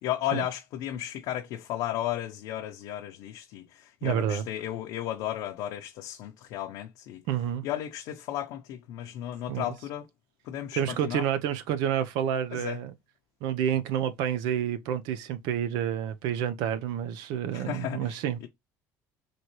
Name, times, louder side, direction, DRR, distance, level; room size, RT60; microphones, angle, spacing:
voice 1, 0.0-7.2 7.6-10.1 10.5-11.3 12.5-12.8 17.5-18.1 18.4-18.5, left 12 dB, 70° left, 0.7 m, -34 dB
voice 2, 4.0-4.4 7.3-7.6 9.5-9.7 10.8-12.9 13.4-18.5, right 9 dB, 80° right, 0.7 m, -29 dB
4.1 x 3.1 x 3.1 m
cardioid pair, 145°, 7 cm